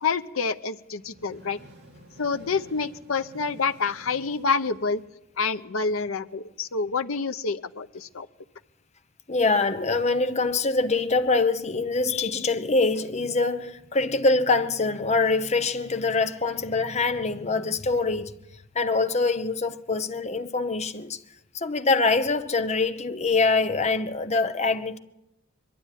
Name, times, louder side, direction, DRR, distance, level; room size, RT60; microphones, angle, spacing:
voice 1, 0.0-1.6 2.2-5.0 5.4-8.3, left 4 dB, 80° left, 0.8 m, -27 dB
sound 1, 0.9-5.5, equal, 60° right, 3.0 m, -51 dB
voice 2, 9.3-18.3 18.7-21.2 21.5-25.0, left 3 dB, 35° left, 1.0 m, -24 dB
22.5 x 12.5 x 10.0 m
head